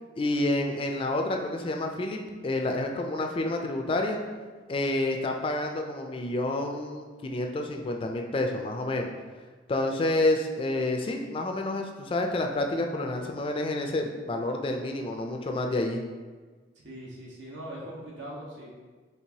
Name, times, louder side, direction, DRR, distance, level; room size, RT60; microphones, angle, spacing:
voice 1, 0.2-4.2 4.7-9.1 9.7-16.0, left 2 dB, 30° left, 3 dB, 0.3 m, -29 dB
voice 2, 16.7-18.7, right 1 dB, 85° right, -4 dB, 1.1 m, -41 dB
4.5 x 3.3 x 2.8 m, 1.4 s
head